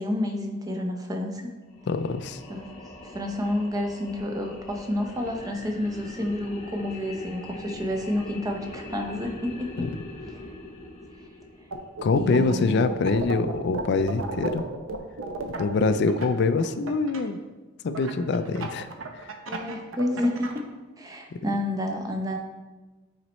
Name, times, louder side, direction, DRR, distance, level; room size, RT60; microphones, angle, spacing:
voice 1, 0.0-1.4 2.5-2.7 3.0-9.5 10.3-10.4 12.2-12.9 19.5-20.6 21.0-22.4, left 1 dB, 15° right, 3 dB, 0.6 m, -29 dB
sound 1, 1.7-12.0, left 1 dB, 30° left, 0.8 m, -42 dB
voice 2, 1.9-2.4 9.8-9.9 12.0-14.7 15.4-17.4 17.8-18.9 19.1-19.3, left 3 dB, 55° left, 11 dB, 0.3 m, -24 dB
sound 2, 11.7-12.5 12.8-17.2 17.9-20.6, right 3 dB, 70° right, 0.7 m, -33 dB
9.0 x 4.2 x 3.1 m, 1.3 s
head